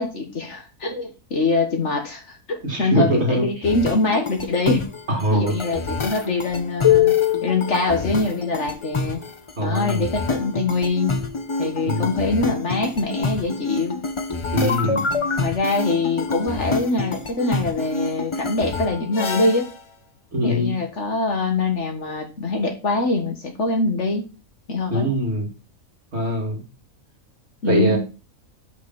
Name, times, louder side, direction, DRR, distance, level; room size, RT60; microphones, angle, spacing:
voice 1, 0.0-4.9 5.3-7.1 7.4-9.2 9.6-11.1 11.6-14.0 15.4-19.7 20.4-24.2 24.7-25.1 27.6-28.0, left 3 dB, 55° left, 4 dB, 1.7 m, -23 dB
voice 2, 2.6-3.5 5.1-5.6 9.6-10.0 11.8-12.1 14.5-15.1 20.3-20.7 24.9-25.5 26.1-26.6 27.7-28.0, equal, 45° right, 0 dB, 2.5 m, -22 dB
sound 1, 3.6-19.8, left 6 dB, 30° left, 0.5 m, -25 dB
6.6 x 6.2 x 3.9 m, 0.32 s
omnidirectional pair, 1.5 m